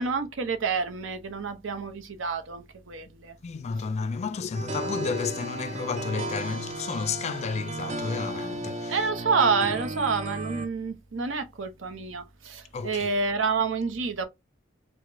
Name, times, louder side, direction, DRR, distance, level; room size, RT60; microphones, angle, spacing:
voice 1, 0.0-3.4 8.9-14.3, right 5 dB, 80° right, 0.7 m, -28 dB
voice 2, 3.4-9.0 12.7-13.1, left 5 dB, 35° left, 0.3 m, -32 dB
sound 1, 4.5-10.7, right 1 dB, 40° right, 0.5 m, -34 dB
4.7 x 2.1 x 2.6 m
head